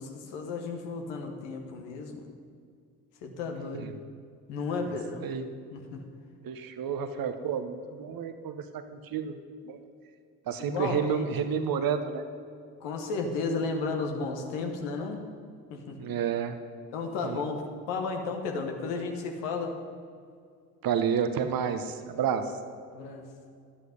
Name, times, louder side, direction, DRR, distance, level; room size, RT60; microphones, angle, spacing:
voice 1, 0.0-2.2 3.2-3.9 4.5-5.3 5.7-6.0 10.6-11.2 12.8-15.2 15.7-16.1 16.9-17.6 17.9-19.7 22.9-23.2, left 4 dB, 75° left, 4 dB, 1.4 m, -33 dB
voice 2, 4.8-5.5 6.4-9.4 9.6-9.8 10.5-12.2 16.0-16.6 17.2-17.4 20.8-22.5, right 7 dB, 55° right, 9 dB, 1.0 m, -30 dB
11.0 x 8.8 x 5.3 m, 2.2 s
hypercardioid pair, 45°, 43 cm